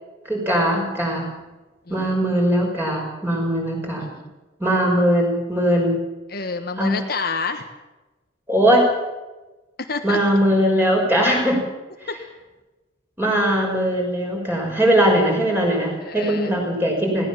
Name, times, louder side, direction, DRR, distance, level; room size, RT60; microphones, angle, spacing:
voice 1, 0.3-1.3 1.9-4.1 4.6-6.0 6.8-7.0 8.5-8.9 10.0-11.6 12.0-12.1 13.2-17.3, equal, 10° right, -1 dB, 5.9 m, -20 dB
voice 2, 4.0-4.3 6.3-7.7 9.8-10.2 12.1-12.2 16.0-16.5, left 4 dB, 50° left, 6 dB, 1.3 m, -29 dB
20.5 x 17.5 x 7.3 m, 1.1 s
head